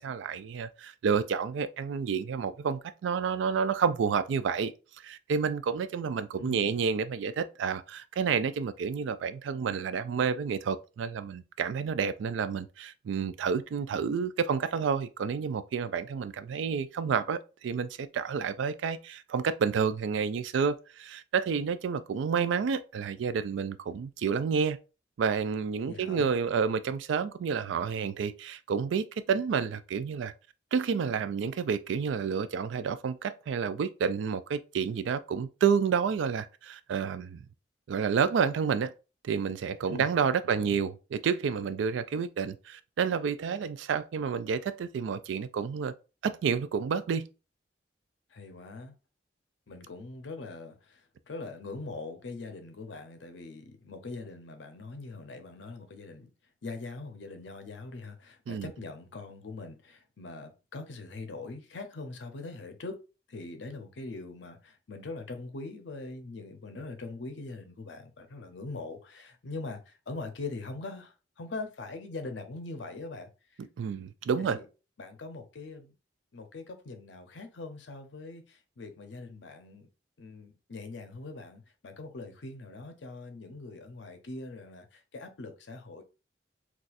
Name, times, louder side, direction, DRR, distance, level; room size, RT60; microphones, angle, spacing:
voice 1, 0.0-4.7 5.0-24.8 25.2-30.3 30.7-37.4 37.9-38.9 39.2-45.9 46.2-47.3 58.5-58.7 73.8-74.6, right 6 dB, 80° right, 0.3 m, -30 dB
voice 2, 6.4-6.8 25.8-26.3 39.9-40.1 40.5-40.8 48.3-48.9 49.7-56.3 56.6-63.0 63.3-73.3 73.8-74.1 74.4-74.7 75.0-75.9 76.3-79.9 80.2-86.0, left 3 dB, 75° left, 0.6 m, -42 dB
3.9 x 2.4 x 2.4 m
head